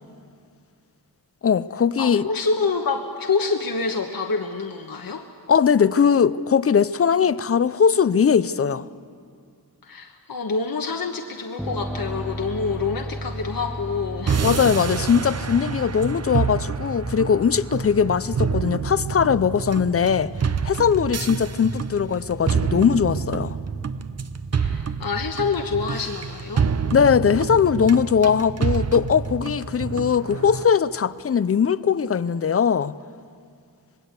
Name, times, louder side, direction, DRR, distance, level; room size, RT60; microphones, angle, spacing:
voice 1, 1.4-2.2 5.5-8.9 14.4-20.3 20.6-23.6 26.9-32.9, left 7 dB, 40° left, 0.5 m, -20 dB
voice 2, 2.0-5.2 9.8-14.4 24.5-26.7, left 4 dB, 65° left, 1.2 m, -27 dB
sound 1, 11.6-27.6, equal, ahead, 0.7 m, -37 dB
sound 2, 14.3-30.6, right 6 dB, 40° right, 0.7 m, -28 dB
26.0 x 20.5 x 8.2 m
wide cardioid pair, 125°, 38 cm